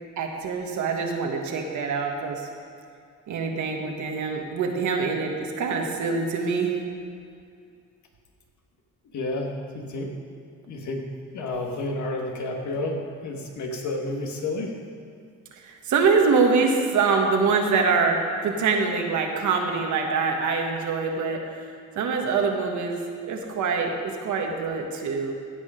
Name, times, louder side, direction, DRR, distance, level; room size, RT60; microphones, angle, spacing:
voice 1, 0.2-2.5 3.3-6.8 15.5-21.7 21.9-23.0 23.3-25.3, right 4 dB, 75° right, 2 dB, 1.5 m, -24 dB
voice 2, 9.1-10.1 10.7-11.0 11.3-14.7, left 2 dB, 70° left, 1 dB, 1.9 m, -30 dB
16.0 x 6.3 x 5.1 m, 2.3 s
cardioid pair, 90°, 30 cm